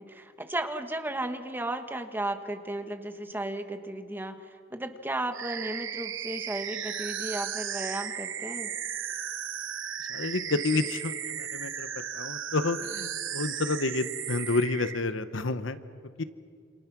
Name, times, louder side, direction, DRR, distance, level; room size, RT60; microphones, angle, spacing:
voice 1, 0.0-8.7, right 1 dB, 10° right, 7 dB, 1.4 m, -34 dB
sound 1, 5.3-15.0, right 9 dB, 75° right, 1.2 m, -35 dB
voice 2, 10.1-11.9 12.1-15.8 16.2-16.3, left 3 dB, 75° left, 12 dB, 1.0 m, -29 dB
28.0 x 27.5 x 6.1 m, 2.2 s
head